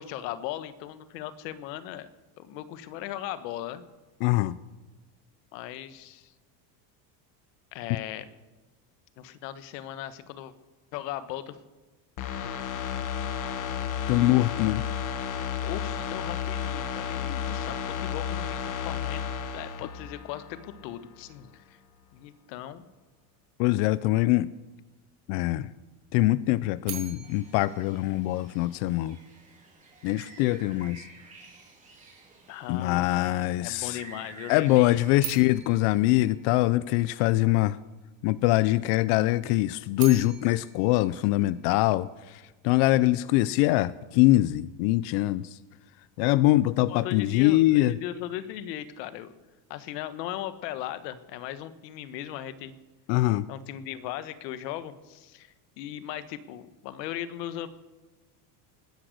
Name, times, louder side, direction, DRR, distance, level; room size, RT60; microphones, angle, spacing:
voice 1, 0.0-2.1 2.4-3.8 5.5-6.3 7.7-8.3 9.2-10.5 10.9-11.6 12.4-12.5 15.0-15.1 15.6-21.8 22.1-22.9 32.5-35.3 46.9-49.3 49.7-52.7 53.5-57.7, left 12 dB, 85° left, 12 dB, 1.4 m, -38 dB
voice 2, 4.2-4.6 14.1-14.8 23.6-24.5 25.3-25.7 26.1-29.2 30.0-31.1 32.7-34.0 34.5-37.8 38.2-45.6 46.2-47.9 53.1-53.5, left 17 dB, 60° left, 17 dB, 0.6 m, -23 dB
sound 1, 12.2-20.8 21.2-21.3, left 8 dB, 40° left, 1.4 m, -32 dB
sound 2, 26.8-29.0 35.2-37.3 39.7-42.1, right 11 dB, 45° right, 2.9 m, -43 dB
sound 3, 27.2-35.1, right 4 dB, 15° right, 4.0 m, -51 dB
20.0 x 10.0 x 6.6 m, 1.2 s
cardioid pair, 155°, 48 cm